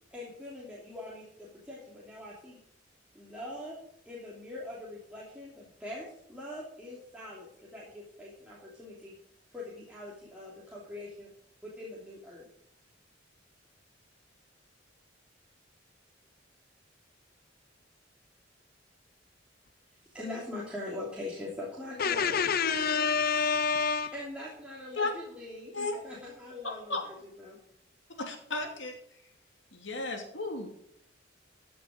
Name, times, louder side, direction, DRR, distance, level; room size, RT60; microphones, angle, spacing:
voice 1, 0.1-2.6 3.1-3.8 4.1-9.2 9.5-11.3 11.6-12.5 20.1-22.4 24.1-25.7 26.0-27.6, left 1 dB, 5° right, 3.0 m, -42 dB
voice 2, 22.0-24.1, left 5 dB, 50° left, 0.7 m, -27 dB
voice 3, 26.6-27.0 28.2-29.0 29.7-30.7, left 3 dB, 70° left, 2.8 m, -34 dB
14.5 x 6.8 x 6.6 m
head